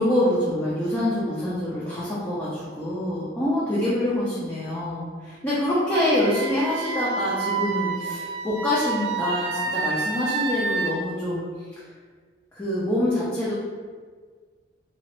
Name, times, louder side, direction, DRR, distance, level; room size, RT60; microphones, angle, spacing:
voice 1, 0.0-11.4 11.8-11.9 12.5-13.5, left 1 dB, 15° left, -10 dB, 0.5 m, -25 dB
Wind instrument woodwind instrument, 5.9-10.9, right 4 dB, 80° right, 0.3 m, -29 dB
2.9 x 2.4 x 3.0 m, 1.5 s
head